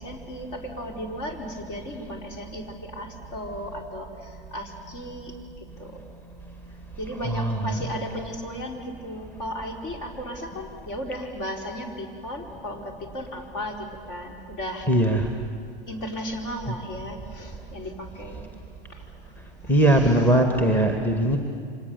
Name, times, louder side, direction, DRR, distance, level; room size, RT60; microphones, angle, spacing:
voice 1, 0.0-6.0 7.0-14.9 15.9-18.4 18.9-19.0 19.6-20.2, equal, 45° left, 2 dB, 4.4 m, -35 dB
voice 2, 7.2-7.6 14.9-15.3 19.7-21.4, right 1 dB, 5° left, 4 dB, 1.9 m, -20 dB
29.5 x 25.5 x 7.1 m, 2.3 s
figure-of-eight pair, 95°, 30 cm